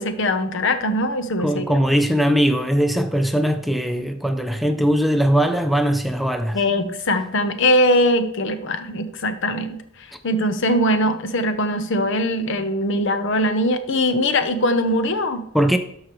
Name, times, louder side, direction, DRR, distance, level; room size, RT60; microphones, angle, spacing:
voice 1, 0.0-1.6 6.5-15.5, left 1 dB, 65° left, 0.8 m, -21 dB
voice 2, 1.4-6.6 15.5-15.8, equal, ahead, 0.4 m, -20 dB
12.5 x 4.9 x 3.1 m
head